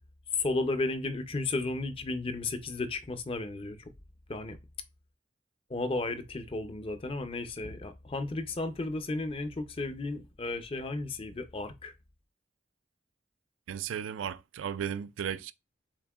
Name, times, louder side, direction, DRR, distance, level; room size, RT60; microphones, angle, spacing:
voice 1, 0.4-3.8 4.3-4.6 5.7-11.9, left 2 dB, 30° left, 0.5 m, -33 dB
voice 2, 13.7-15.5, right 8 dB, 85° right, 0.4 m, -35 dB
7.1 x 2.6 x 2.3 m
head